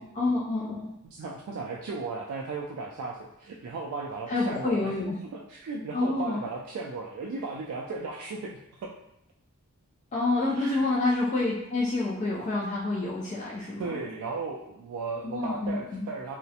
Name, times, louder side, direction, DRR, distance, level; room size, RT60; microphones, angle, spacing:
voice 1, 0.0-0.9 4.3-5.2 5.9-6.4 10.1-13.9 15.2-16.1, left 2 dB, 35° left, -6 dB, 0.3 m, -28 dB
voice 2, 1.0-4.9 5.3-8.9 10.5-10.9 13.8-16.4, right 4 dB, 80° right, -2 dB, 0.3 m, -36 dB
2.4 x 2.1 x 2.7 m, 0.81 s
head